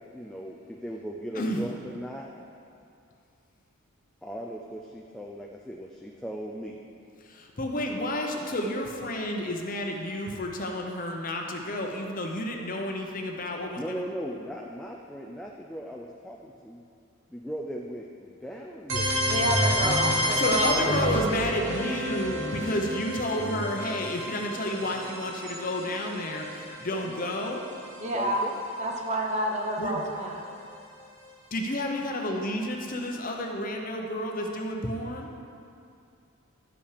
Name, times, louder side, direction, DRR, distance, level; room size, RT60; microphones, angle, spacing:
voice 1, 0.0-2.3 4.2-6.8 13.7-16.8 17.3-19.2 20.5-21.3 21.6-22.2 26.8-27.3 28.1-28.6, equal, 5° left, -1 dB, 0.4 m, -38 dB
voice 2, 1.4-1.7 7.2-14.0 20.3-27.6 29.8-30.0 31.5-35.3, left 1 dB, 40° left, 1 dB, 0.8 m, -31 dB
sound 1, 18.9-28.6, equal, 60° right, 1.2 m, -30 dB
voice 3, 19.2-21.1 28.0-28.4 28.8-30.5, right 1 dB, 35° right, 1 dB, 0.9 m, -29 dB
12.0 x 5.5 x 5.0 m, 2.5 s
head